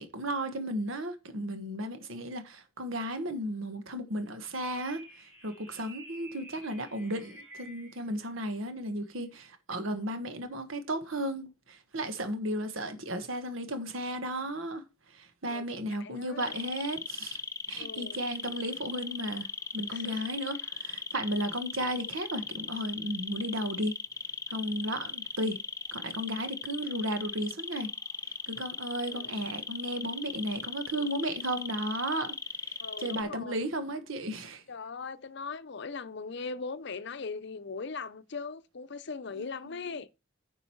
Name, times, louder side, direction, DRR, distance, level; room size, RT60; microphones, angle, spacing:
voice 1, 0.0-5.0 5.4-14.8 15.1-17.4 17.7-19.5 19.7-24.0 24.5-25.6 25.9-27.9 28.5-32.3 32.6-34.6 39.4-39.5 39.9-40.0, right 1 dB, 80° right, 1.5 m, -34 dB
sound 1, 4.6-8.1, right 2 dB, 10° right, 3.2 m, -51 dB
voice 2, 16.0-16.5 17.7-18.2 19.9-20.3 29.0-29.4 32.8-33.6 34.7-40.1, left 4 dB, 55° left, 0.6 m, -40 dB
sound 2, 16.4-33.2, left 5 dB, 15° left, 0.5 m, -38 dB
10.0 x 5.3 x 4.6 m
head